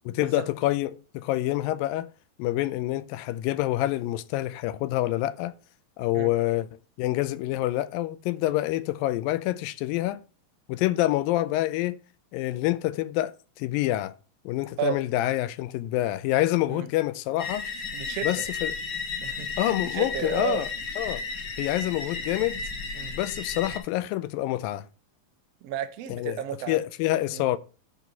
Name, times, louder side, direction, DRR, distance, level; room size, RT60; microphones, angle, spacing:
voice 1, 0.1-2.1 2.4-5.5 6.0-6.7 7.0-10.2 10.7-12.0 12.3-14.1 14.5-17.7 18.2-18.8 19.6-20.7 21.0-21.2 21.6-22.6 23.1-24.9 26.1-27.6, left 15 dB, 80° left, 2.3 m, -27 dB
sound 1, 17.4-23.8, left 4 dB, 65° left, 1.0 m, -34 dB
voice 2, 17.9-18.4 19.2-20.7 22.9-23.1 25.6-26.8 27.3-27.5, right 9 dB, 70° right, 1.5 m, -33 dB
11.5 x 4.1 x 5.6 m
omnidirectional pair, 4.1 m